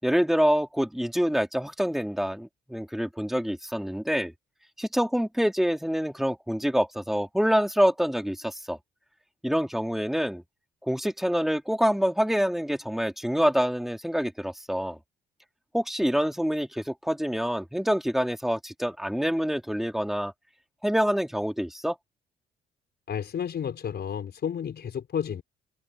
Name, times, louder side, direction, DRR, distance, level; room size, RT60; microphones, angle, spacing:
voice 1, 0.0-4.3 4.8-8.8 9.4-10.4 10.9-15.0 15.7-20.3 20.8-22.0, equal, ahead, 4.0 m, -26 dB
voice 2, 23.1-25.4, left 8 dB, 55° left, 5.6 m, -31 dB
cardioid pair, 90°, 20 cm